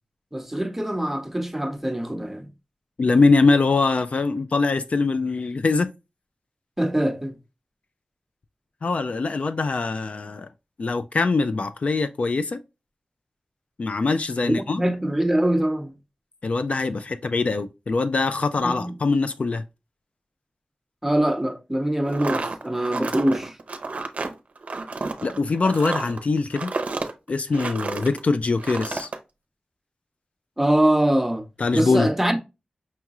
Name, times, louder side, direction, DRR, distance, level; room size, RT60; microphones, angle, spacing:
voice 1, 0.3-2.5 6.8-7.4 14.4-15.9 18.6-18.9 21.0-23.6 30.6-31.4 31.7-32.4, right 1 dB, 10° right, 0.6 m, -23 dB
voice 2, 3.0-5.9 8.8-10.5 10.8-12.6 13.8-14.8 16.4-19.6 25.2-26.7 27.3-29.1 31.6-32.1, left 3 dB, 60° left, 0.3 m, -23 dB
sound 1, 22.0-28.2 28.6-29.2, right 3 dB, 60° right, 0.6 m, -31 dB
5.5 x 3.0 x 2.3 m
wide cardioid pair, 105°, 3 cm